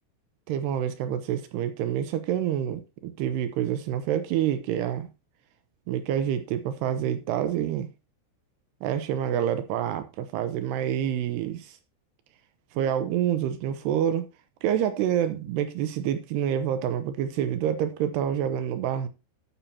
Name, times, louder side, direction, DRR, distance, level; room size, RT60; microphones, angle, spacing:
voice 1, 0.5-5.1 5.9-7.9 8.8-11.8 12.7-14.3 14.6-19.1, right 10 dB, 80° right, 2.6 m, -27 dB
12.5 x 7.2 x 2.8 m
omnidirectional pair, 5.2 m